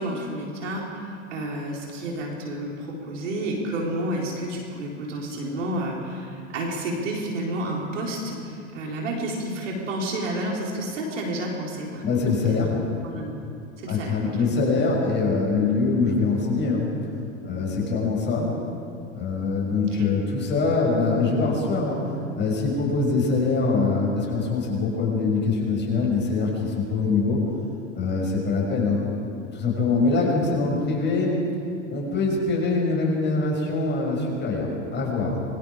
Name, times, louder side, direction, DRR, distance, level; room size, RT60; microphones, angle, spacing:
voice 1, 0.0-12.2 12.5-12.6 13.0-13.4 13.8-14.4 19.8-20.1 30.1-30.3, right 1 dB, 80° right, -2 dB, 4.3 m, -30 dB
voice 2, 12.0-12.8 13.9-16.9 17.4-18.5 19.1-22.0 22.4-27.4 27.9-29.0 29.5-31.4 31.9-35.4, left 4 dB, 30° left, -2 dB, 6.7 m, -23 dB
25.5 x 23.0 x 5.0 m, 2.5 s
hypercardioid pair, 95°, 37 cm